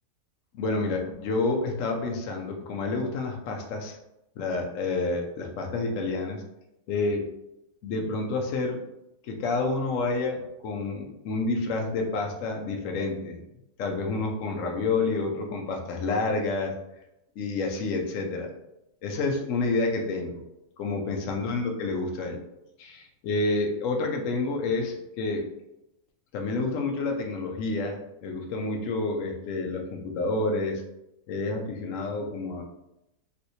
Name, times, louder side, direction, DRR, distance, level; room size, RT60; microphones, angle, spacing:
voice 1, 0.5-4.0 4.4-6.4 6.9-7.3 7.8-8.8 9.2-13.4 13.8-16.8 17.4-18.5 19.0-20.4 20.8-22.4 22.8-25.5 26.3-30.8 31.3-32.6, left 3 dB, 65° left, 2 dB, 0.8 m, -29 dB
3.2 x 3.0 x 2.6 m, 0.87 s
omnidirectional pair, 1.8 m